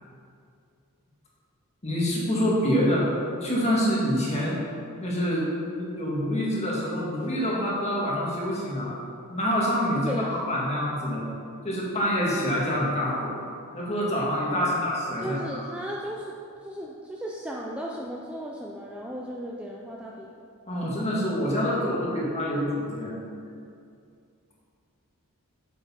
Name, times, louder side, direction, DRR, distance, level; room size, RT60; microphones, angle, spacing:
voice 1, 1.8-3.1 3.4-4.6 5.0-9.0 9.3-11.2 11.6-13.4 13.7-15.6 20.7-23.1, equal, 30° left, -5 dB, 1.9 m, -26 dB
voice 2, 9.9-10.4 14.7-14.8 15.2-16.3 16.6-20.5 21.9-22.3, equal, 5° right, -3 dB, 0.5 m, -36 dB
8.3 x 6.9 x 4.3 m, 2.4 s
head